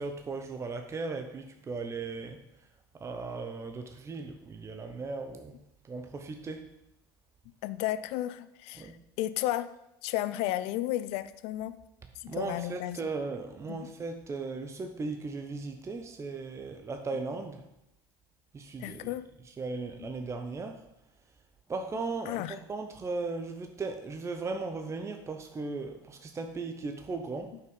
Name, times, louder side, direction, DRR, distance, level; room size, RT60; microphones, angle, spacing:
voice 1, 0.0-2.4 2.9-5.6 5.9-6.7 8.8-9.0 12.3-17.6 18.5-19.1 19.6-20.8 21.7-27.5, right 3 dB, 25° right, 6 dB, 0.9 m, -37 dB
voice 2, 7.6-8.9 9.2-9.7 10.0-11.8 12.2-13.0 13.7-13.9 18.8-19.2 20.0-20.1 22.3-22.6 27.5-27.6, left 14 dB, 65° left, 15 dB, 0.6 m, -33 dB
9.1 x 5.8 x 5.6 m, 0.86 s
hypercardioid pair, 85°, 12 cm